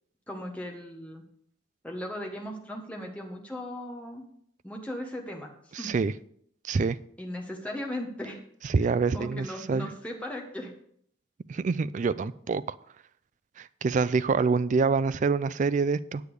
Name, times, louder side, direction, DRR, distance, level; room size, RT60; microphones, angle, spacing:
voice 1, 0.3-1.2 1.8-4.2 4.6-5.9 7.2-8.4 8.8-10.7, left 1 dB, 5° left, 0 dB, 1.3 m, -37 dB
voice 2, 6.6-7.0 8.7-9.9 11.5-12.6 13.6-16.2, right 4 dB, 40° right, 16 dB, 0.3 m, -26 dB
8.3 x 8.3 x 4.9 m, 0.65 s
head